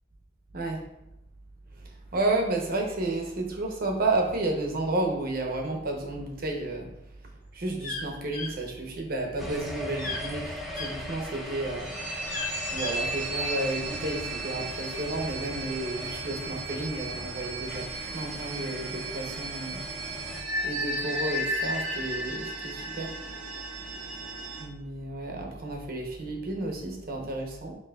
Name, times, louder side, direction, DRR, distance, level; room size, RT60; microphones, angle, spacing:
voice 1, 2.1-6.9 7.5-11.9 12.7-19.8 20.6-23.1 24.6-27.7, right 2 dB, 50° right, 1 dB, 0.8 m, -31 dB
sound 1, 7.8-8.0 8.3-8.5 10.0-10.3 10.7-10.9 12.3-12.9, left 3 dB, 45° left, 0.5 m, -35 dB
sound 2, 9.4-20.4, equal, ahead, 0.6 m, -40 dB
sound 3, 11.8-24.6, right 1 dB, 85° right, 0.8 m, -35 dB
5.4 x 3.1 x 2.3 m, 0.83 s
head